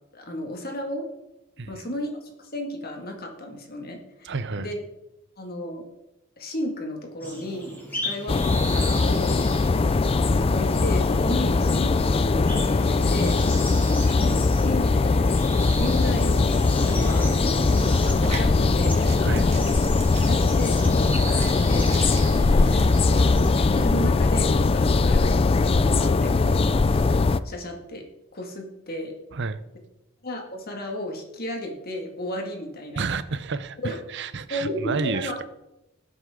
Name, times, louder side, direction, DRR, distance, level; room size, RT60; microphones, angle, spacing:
voice 1, 0.1-1.0 1.7-4.8 5.4-5.8 6.4-9.4 10.2-13.4 14.2-14.9 15.7-19.1 20.2-21.9 22.5-28.0 28.3-29.1 30.2-33.1 33.8-34.0 34.5-35.5, equal, 45° left, 2 dB, 2.1 m, -34 dB
voice 2, 4.2-4.7 14.1-14.2 19.2-19.5 29.3-29.6 33.0-35.3, right 4 dB, 55° right, 13 dB, 0.7 m, -30 dB
sound 1, 7.2-23.9, equal, 10° left, 2.9 m, -37 dB
sound 2, 8.3-27.4, left 3 dB, 25° left, 0.3 m, -21 dB
sound 3, 18.1-23.3, right 4 dB, 30° right, 2.2 m, -41 dB
19.5 x 7.9 x 3.8 m, 0.92 s
head